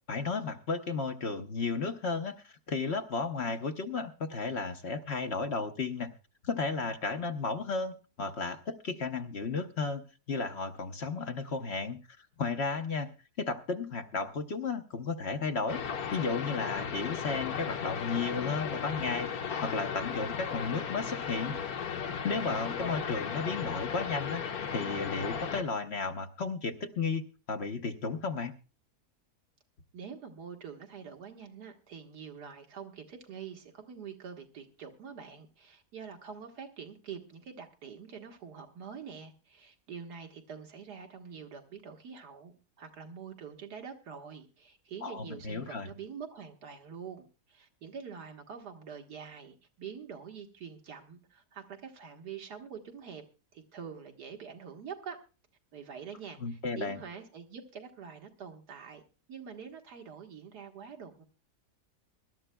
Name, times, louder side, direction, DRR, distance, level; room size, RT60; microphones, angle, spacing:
voice 1, 0.1-6.1 6.4-15.8 16.1-19.3 19.6-21.6 22.2-24.4 24.7-27.2 27.5-28.5 45.0-45.9 56.4-57.0, left 4 dB, 50° left, 7 dB, 1.0 m, -34 dB
sound 1, 15.7-25.6, left 7 dB, 70° left, 1.5 m, -35 dB
voice 2, 29.9-53.2 53.5-55.2 55.7-59.0 59.3-61.2, right 6 dB, 85° right, 3 dB, 2.1 m, -45 dB
24.5 x 12.5 x 2.2 m, 0.33 s
omnidirectional pair, 1.7 m